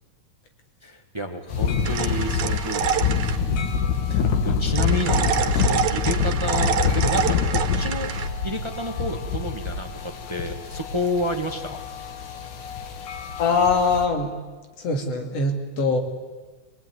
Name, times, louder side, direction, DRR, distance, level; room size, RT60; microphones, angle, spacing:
voice 1, 0.8-3.1 4.1-8.1 8.4-11.8, equal, 30° right, 5 dB, 0.5 m, -30 dB
sound 1, 1.5-14.0, left 6 dB, 90° left, 3.3 m, -26 dB
sound 2, 1.8-3.4 4.8-8.3, right 8 dB, 85° right, 2.6 m, -27 dB
voice 2, 13.4-14.4 14.8-16.0, left 4 dB, 60° left, 4 dB, 3.3 m, -22 dB
24.0 x 19.0 x 9.6 m, 1.3 s
omnidirectional pair, 3.4 m